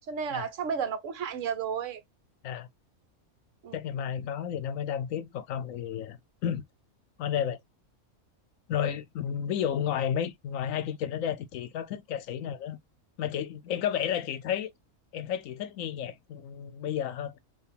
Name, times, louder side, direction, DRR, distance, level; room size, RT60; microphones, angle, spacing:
voice 1, 0.1-2.0 3.6-3.8, right 7 dB, 65° right, 1.1 m, -32 dB
voice 2, 3.7-6.6 7.2-7.6 8.7-12.8 13.2-14.7 15.1-17.4, left 9 dB, 75° left, 1.0 m, -32 dB
4.6 x 2.7 x 3.4 m
omnidirectional pair, 1.5 m